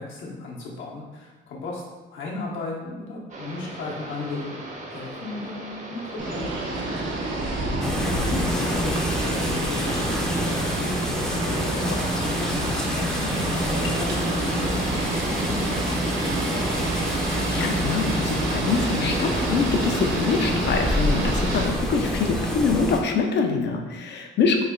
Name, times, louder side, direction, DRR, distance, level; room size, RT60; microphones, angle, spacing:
voice 1, 0.0-1.8 2.1-4.5 4.9-7.2 8.0-10.2 10.4-10.7 11.4-16.8, left 3 dB, 75° left, -3 dB, 0.9 m, -35 dB
sound 1, 3.3-22.6, right 2 dB, 40° right, 0.7 m, -38 dB
sound 2, 6.2-21.7, right 2 dB, 75° right, 0.7 m, -29 dB
sound 3, 7.8-23.0, left 1 dB, 5° left, 0.5 m, -28 dB
voice 2, 17.5-24.6, left 5 dB, 60° left, 3 dB, 0.5 m, -25 dB
3.2 x 2.2 x 3.7 m, 1.2 s
cardioid pair, 90°, 20 cm